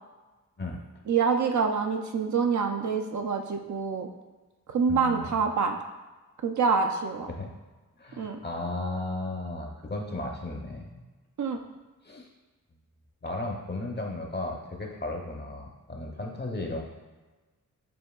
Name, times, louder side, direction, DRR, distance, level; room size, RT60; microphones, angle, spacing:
voice 1, 1.1-4.1 4.7-5.8 6.4-7.3 8.2-8.4 11.4-11.6, right 5 dB, 60° right, 4 dB, 0.5 m, -26 dB
voice 2, 4.9-5.3 7.3-7.5 8.0-11.0 12.0-12.3 13.2-16.8, left 2 dB, 30° left, 1 dB, 0.7 m, -35 dB
6.9 x 2.7 x 2.3 m, 1.2 s
cardioid pair, 70°, 34 cm